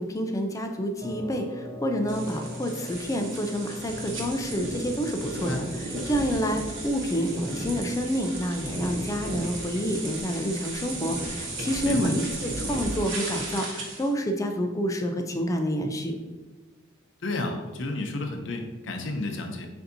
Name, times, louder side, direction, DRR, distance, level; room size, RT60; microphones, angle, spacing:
voice 1, 0.0-16.2, equal, 15° left, 4 dB, 0.3 m, -28 dB
sound 1, 1.0-14.0, equal, 35° right, 0.5 m, -45 dB
sound 2, 2.1-14.1, right 2 dB, 80° right, 1.1 m, -35 dB
voice 2, 17.2-19.7, left 2 dB, 70° left, 4 dB, 0.6 m, -31 dB
6.7 x 2.6 x 2.7 m, 1.3 s
head